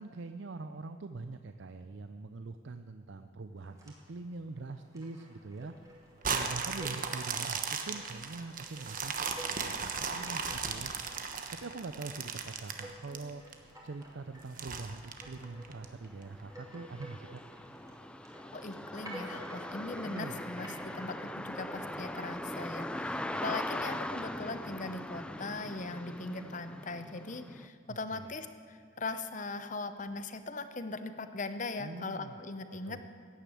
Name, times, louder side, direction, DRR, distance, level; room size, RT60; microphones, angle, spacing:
voice 1, 0.0-5.7 6.3-10.9 11.5-13.5 13.8-17.4 20.0-20.4 27.9-28.3 31.8-32.4 32.8-33.1, right 3 dB, 60° right, 9 dB, 0.5 m, -44 dB
sound 1, 3.6-23.2, right 1 dB, 15° right, 2.6 m, -53 dB
sound 2, 6.2-13.5 14.0-14.1 14.6-15.8 16.4-16.5, right 5 dB, 40° right, 1.2 m, -36 dB
sound 3, 14.2-14.3 14.8-27.7, left 1 dB, 5° left, 0.4 m, -41 dB
voice 2, 18.4-33.1, left 3 dB, 35° left, 10 dB, 0.8 m, -40 dB
15.5 x 10.0 x 8.5 m, 2.3 s
head